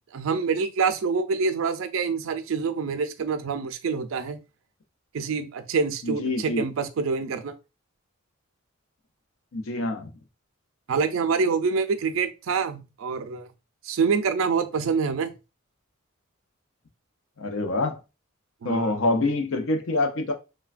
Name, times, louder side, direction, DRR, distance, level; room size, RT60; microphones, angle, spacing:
voice 1, 0.1-4.4 5.1-7.5 10.9-13.5 13.8-15.3 18.6-18.9, right 5 dB, 75° right, 0.4 m, -26 dB
voice 2, 6.0-6.6 9.5-10.1 17.4-18.0 18.6-20.3, left 2 dB, 75° left, 0.5 m, -26 dB
3.2 x 2.2 x 2.4 m
head